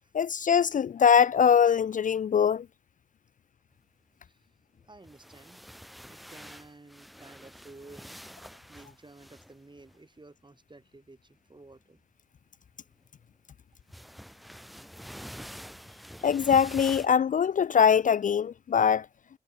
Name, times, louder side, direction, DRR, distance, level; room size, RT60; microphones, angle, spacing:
voice 1, 0.1-2.7 16.2-19.1, left 7 dB, 50° left, 0.4 m, -22 dB
sound 1, 4.9-10.0 11.7-12.0 13.9-17.1, equal, ahead, 6.6 m, -46 dB
voice 2, 4.9-5.6 6.1-8.2 8.7-12.0, right 2 dB, 30° right, 6.9 m, -52 dB
cardioid pair, 55°, 16 cm